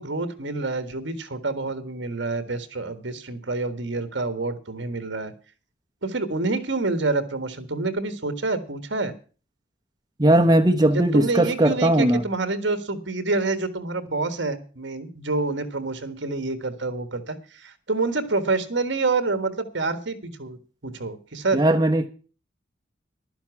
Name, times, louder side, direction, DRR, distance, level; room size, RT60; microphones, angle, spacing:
voice 1, 0.0-5.3 6.0-9.1 10.9-21.6, right 3 dB, 65° right, 1.6 m, -27 dB
voice 2, 10.2-12.2 21.5-22.1, right 1 dB, 20° right, 0.9 m, -18 dB
12.0 x 10.5 x 6.0 m
head